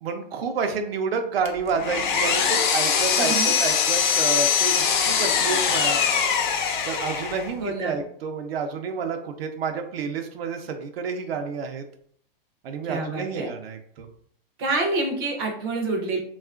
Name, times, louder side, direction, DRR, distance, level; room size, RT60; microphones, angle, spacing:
voice 1, 0.0-6.0 6.9-11.8 12.6-14.1, right 5 dB, 85° right, 5 dB, 0.5 m, -29 dB
Power tool, 1.4-7.5, left 7 dB, 55° left, 0.5 m, -22 dB
voice 2, 3.2-3.5 7.6-8.0 12.9-13.5 14.6-16.2, right 2 dB, 25° right, 1 dB, 0.4 m, -27 dB
3.6 x 2.3 x 2.3 m, 0.62 s
hypercardioid pair, 160°, 30 cm